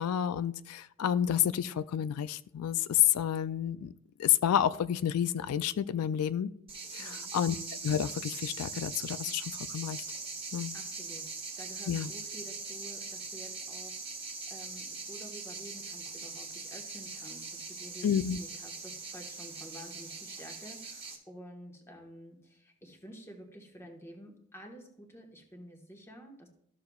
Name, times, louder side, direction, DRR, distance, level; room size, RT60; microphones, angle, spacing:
voice 1, 0.0-3.9 4.2-6.5 6.9-7.6 7.8-10.0 10.5-10.7 11.9-12.1 18.0-18.4, left 10 dB, 90° left, 15 dB, 0.3 m, -30 dB
sound 1, 6.7-21.2, right 4 dB, 25° right, 1.4 m, -41 dB
voice 2, 7.0-7.4 10.7-26.5, equal, 10° left, 1 dB, 1.3 m, -50 dB
13.5 x 6.7 x 2.3 m, 0.72 s
head